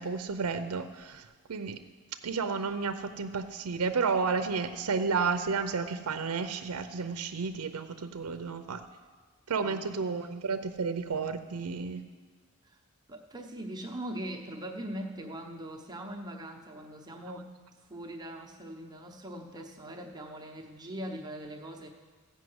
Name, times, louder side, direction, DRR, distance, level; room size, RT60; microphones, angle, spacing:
voice 1, 0.0-1.8 2.2-8.8 9.5-12.0, right 5 dB, 85° right, 9 dB, 0.6 m, -32 dB
voice 2, 9.6-10.0 12.6-12.8 13.1-17.5 17.9-21.9, right 1 dB, 20° right, 1 dB, 0.9 m, -41 dB
15.5 x 5.5 x 7.8 m, 1.5 s
head